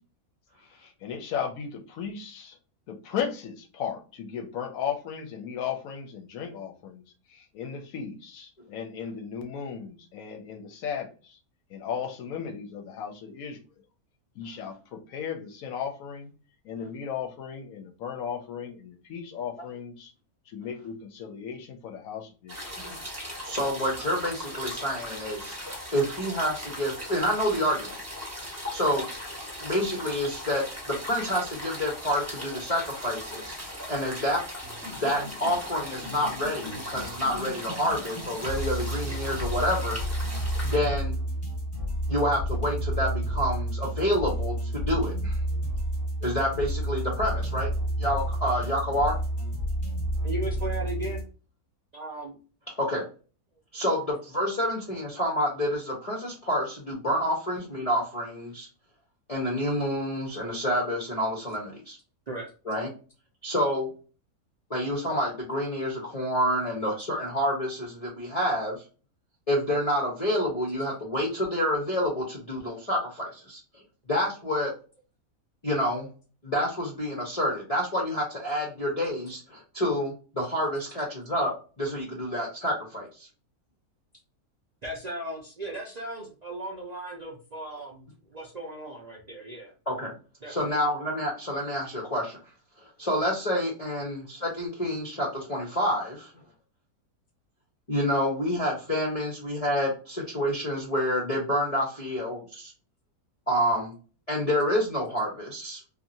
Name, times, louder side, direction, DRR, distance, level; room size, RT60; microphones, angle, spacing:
voice 1, 0.8-2.6 2.9-7.0 7.3-11.4 11.7-13.6 14.4-16.3 16.6-20.1 20.5-22.6, left 7 dB, 75° left, 5 dB, 1.0 m, -36 dB
sound 1, 22.5-40.8, left 1 dB, 15° right, 0.8 m, -39 dB
voice 2, 23.4-28.0 28.7-29.1 29.6-34.4 34.9-40.0 40.6-41.2 42.1-45.4 46.2-47.7 48.0-49.2 52.8-53.0 53.7-58.7 59.3-62.0 62.7-62.9 63.4-63.9 64.7-68.8 69.5-73.6 74.1-74.7 75.6-76.1 76.4-81.5 81.8-83.3 89.9-90.1 90.5-92.4 93.0-96.3 97.9-102.7 103.5-103.9 104.3-105.8, equal, 35° left, -3 dB, 0.6 m, -28 dB
sound 2, 34.6-51.2, right 1 dB, 15° left, 1.1 m, -31 dB
voice 3, 50.2-51.3 51.9-52.4 62.3-62.5 84.8-89.7 90.4-90.8, right 1 dB, 65° right, -2 dB, 0.4 m, -37 dB
2.8 x 2.4 x 2.6 m, 0.36 s
omnidirectional pair, 1.6 m